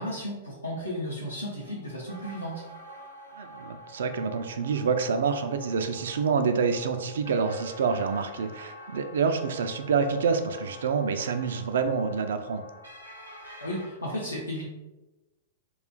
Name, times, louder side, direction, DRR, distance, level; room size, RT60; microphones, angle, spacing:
voice 1, 0.0-2.6 13.6-14.6, equal, 85° left, -6 dB, 0.6 m, -34 dB
sound 1, 1.3-13.9, equal, 80° right, 0.7 m, -47 dB
voice 2, 3.4-12.6, right 5 dB, 60° right, 7 dB, 0.3 m, -27 dB
2.4 x 2.3 x 3.7 m, 1.1 s
figure-of-eight pair, 100°, 0 cm